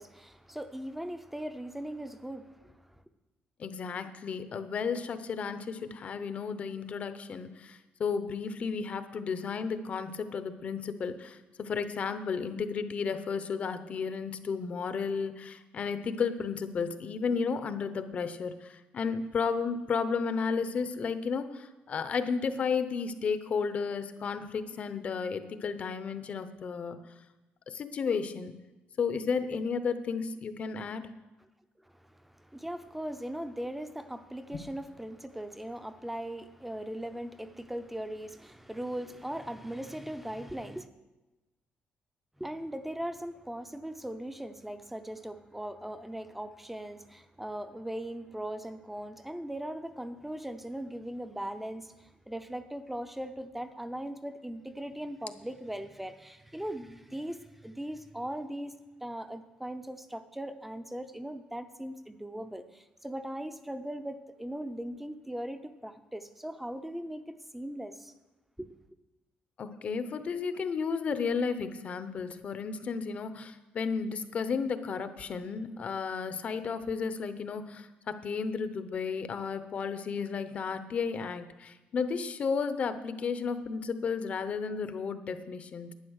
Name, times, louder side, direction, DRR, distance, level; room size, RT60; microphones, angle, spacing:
voice 1, 0.0-3.0 31.8-40.9 42.4-68.1 68.6-68.7, right 1 dB, 5° right, 0.6 m, -39 dB
voice 2, 3.6-27.0 27.7-28.5 29.0-31.1 34.5-34.6 69.6-85.9, left 5 dB, 35° left, 0.7 m, -33 dB
11.5 x 9.5 x 6.4 m
cardioid pair, 180°, 4 cm